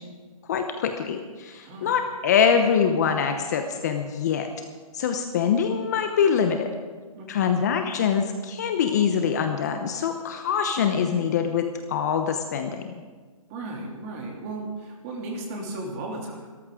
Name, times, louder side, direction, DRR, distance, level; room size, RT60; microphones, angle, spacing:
voice 1, 0.5-4.5 4.9-6.7 7.3-12.9, left 7 dB, 30° left, 6 dB, 0.8 m, -24 dB
voice 2, 7.1-7.6 13.5-16.5, right 2 dB, 25° right, 0 dB, 2.8 m, -35 dB
24.0 x 13.5 x 3.7 m, 1.5 s
hypercardioid pair, 160°, 18 cm